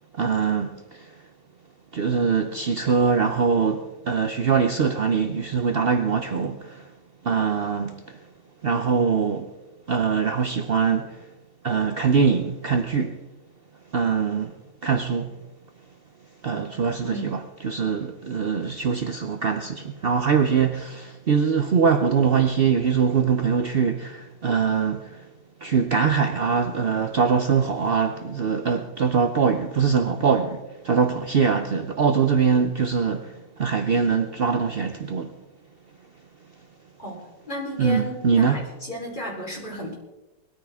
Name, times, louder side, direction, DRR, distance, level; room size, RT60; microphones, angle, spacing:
voice 1, 0.1-1.1 1.9-6.9 7.2-8.2 8.6-9.5 9.9-11.3 11.6-13.2 13.9-14.6 14.8-15.3 16.4-25.2 25.6-35.4 37.8-38.6, right 6 dB, 65° right, 0.5 m, -23 dB
voice 2, 17.0-17.4 37.0-39.9, equal, 25° left, 4.0 m, -34 dB
20.0 x 13.5 x 3.6 m
omnidirectional pair, 2.0 m